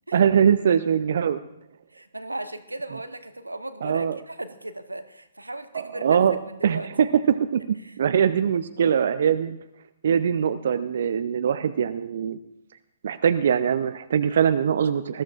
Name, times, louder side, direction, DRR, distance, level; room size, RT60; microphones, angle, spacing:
voice 1, 0.1-1.4 3.8-4.2 5.7-7.1 7.4-9.6 10.0-12.4 13.0-15.2, right 8 dB, 60° right, 11 dB, 0.5 m, -22 dB
voice 2, 1.9-6.2 6.5-6.9 7.8-8.0, right 2 dB, 90° right, 10 dB, 0.9 m, -36 dB
20.5 x 13.5 x 2.4 m, 0.85 s
figure-of-eight pair, 125°, 0 cm